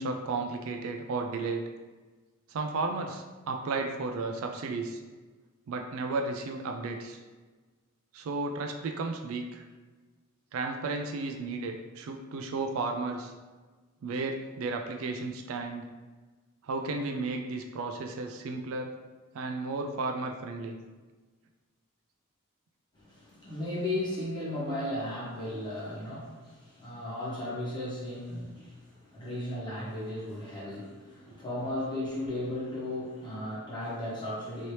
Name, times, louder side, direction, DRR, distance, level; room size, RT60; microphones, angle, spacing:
voice 1, 0.0-1.6 2.5-5.0 5.7-7.2 8.1-9.6 10.5-13.3 14.0-15.8 16.6-18.9 19.3-20.8, right 3 dB, 65° right, 3 dB, 0.3 m, -33 dB
voice 2, 22.9-34.7, left 1 dB, 20° left, -7 dB, 1.1 m, -35 dB
3.2 x 2.8 x 2.9 m, 1.3 s
head